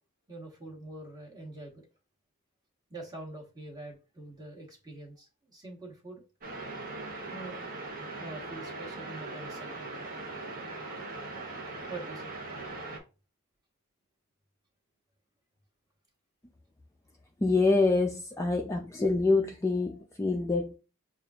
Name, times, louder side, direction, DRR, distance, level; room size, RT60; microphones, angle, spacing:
voice 1, 0.3-1.9 2.9-6.2 7.3-7.7 8.1-9.9 11.9-12.3, right 2 dB, 20° right, 1.2 m, -45 dB
sound 1, 6.4-13.0, right 2 dB, 40° right, 0.9 m, -40 dB
voice 2, 17.4-20.8, left 3 dB, 15° left, 0.3 m, -26 dB
6.5 x 2.5 x 2.3 m
head